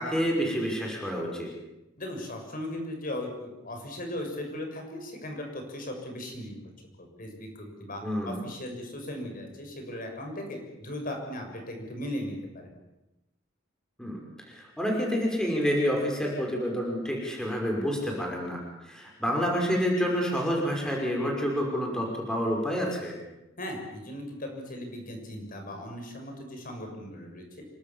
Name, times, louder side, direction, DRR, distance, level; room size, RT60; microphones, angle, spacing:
voice 1, 0.0-1.5 8.0-8.4 14.0-14.2 14.5-23.1, equal, 5° left, -1 dB, 5.6 m, -28 dB
voice 2, 2.0-6.6 7.0-12.7 23.6-27.7, left 1 dB, 45° left, 3 dB, 6.6 m, -38 dB
27.5 x 23.5 x 7.3 m, 0.95 s
head